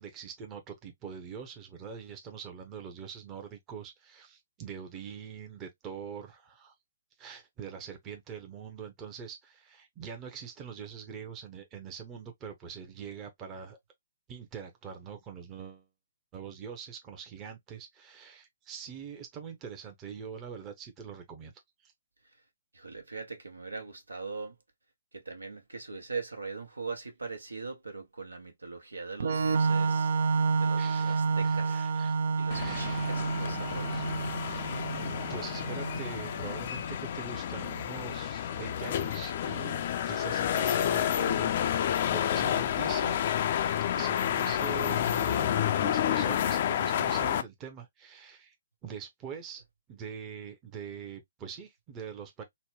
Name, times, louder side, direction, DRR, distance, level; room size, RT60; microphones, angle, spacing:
voice 1, 0.0-6.7 7.2-13.8 14.3-15.9 16.3-21.5 21.8-21.9 30.8-32.2 32.5-33.2 33.6-34.1 35.3-43.2 43.9-48.5 48.8-49.6 49.9-52.4, right 7 dB, 20° right, 0.7 m, -43 dB
voice 2, 22.7-24.5 25.1-30.1 30.6-31.9 32.4-33.9, right 4 dB, 80° right, 1.1 m, -41 dB
Organ, 29.2-36.7, right 4 dB, 60° right, 0.5 m, -30 dB
sound 1, 32.5-47.4, left 10 dB, 45° left, 0.4 m, -30 dB
4.0 x 2.2 x 3.0 m
figure-of-eight pair, 130°, 0 cm